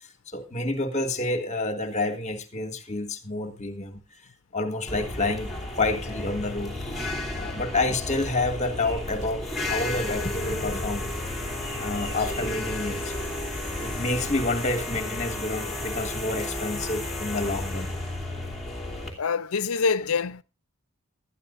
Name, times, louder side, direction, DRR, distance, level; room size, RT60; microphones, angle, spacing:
voice 1, 0.3-4.0 4.5-6.7 7.3-11.1 11.8-13.1 13.8-17.9, left 2 dB, 30° left, 1.6 m, -29 dB
sound 1, 4.9-19.1, left 2 dB, ahead, 3.0 m, -33 dB
sound 2, 8.8-14.1, equal, 60° right, 8.0 m, -42 dB
voice 2, 19.2-20.4, left 5 dB, 75° left, 0.6 m, -25 dB
19.0 x 12.5 x 2.6 m
head